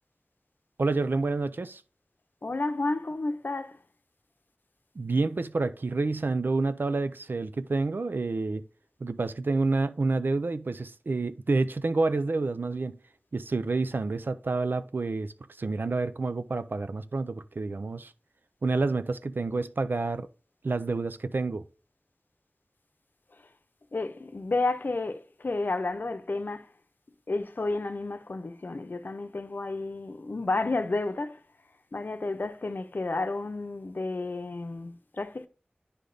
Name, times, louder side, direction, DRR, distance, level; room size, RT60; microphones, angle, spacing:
voice 1, 0.8-1.8 5.0-8.6 9.0-12.9 13.3-15.3 15.6-18.1 18.6-20.3 20.6-21.6, right 3 dB, 70° right, 0.5 m, -28 dB
voice 2, 2.4-3.8 23.9-26.7 27.3-31.4 31.9-35.5, left 3 dB, 65° left, 0.7 m, -31 dB
9.8 x 3.4 x 3.9 m
wide cardioid pair, 60°, 4 cm